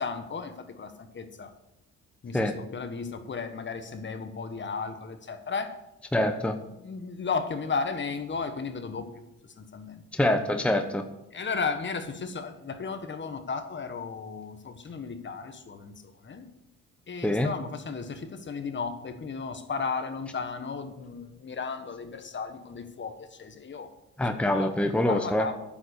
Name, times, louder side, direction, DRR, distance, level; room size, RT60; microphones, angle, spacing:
voice 1, 0.0-1.5 2.2-5.8 6.8-9.2 9.6-10.0 11.3-15.9 16.2-16.5 17.1-23.9 24.5-24.7 25.1-25.6, left 5 dB, 40° left, 8 dB, 1.4 m, -34 dB
voice 2, 6.1-6.6 10.1-11.0 17.2-17.5 24.2-25.5, left 1 dB, 5° left, 6 dB, 0.9 m, -25 dB
9.8 x 7.4 x 6.7 m, 0.88 s
cardioid pair, 90°, 30 cm